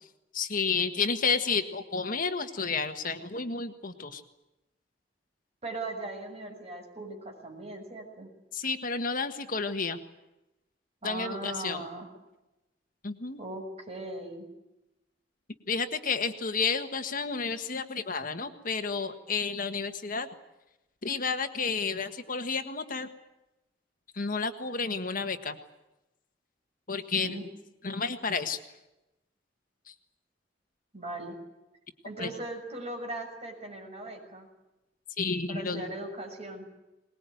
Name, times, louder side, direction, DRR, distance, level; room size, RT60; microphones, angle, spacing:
voice 1, 0.3-4.2 8.5-10.0 11.0-11.8 13.0-13.4 15.7-20.3 21.0-23.1 24.1-25.6 26.9-27.4 27.8-28.6 29.9-30.0 32.2-32.3 35.2-35.8, left 5 dB, 50° left, 8 dB, 1.6 m, -31 dB
voice 2, 5.6-8.3 11.0-12.1 13.4-14.5 27.2-27.4 30.9-31.4 32.0-34.5 35.5-36.7, right 2 dB, 35° right, 3 dB, 6.8 m, -39 dB
22.5 x 21.0 x 9.3 m, 0.96 s
head